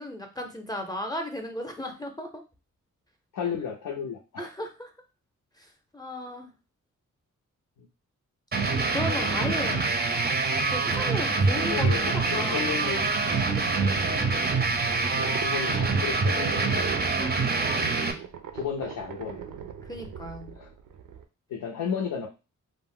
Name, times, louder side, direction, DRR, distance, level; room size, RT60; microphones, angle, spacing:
voice 1, 0.0-2.4 4.4-4.9 5.6-5.7 5.9-6.5 8.9-9.8 10.6-12.7 13.2-13.4 17.1-17.3 19.9-20.5, left 1 dB, 10° left, 4 dB, 0.6 m, -35 dB
voice 2, 3.3-4.5 7.8-7.9 9.4-10.0 11.6-13.1 15.1-16.9 17.8-18.0 18.5-19.4 20.5-20.7 21.5-22.3, left 7 dB, 85° left, -2 dB, 0.6 m, -34 dB
sound 1, 8.5-18.1, right 3 dB, 30° right, 0.5 m, -25 dB
sound 2, 11.8-21.2, right 8 dB, 85° right, 0.5 m, -41 dB
2.5 x 2.0 x 3.6 m, 0.29 s
cardioid pair, 85°, 32 cm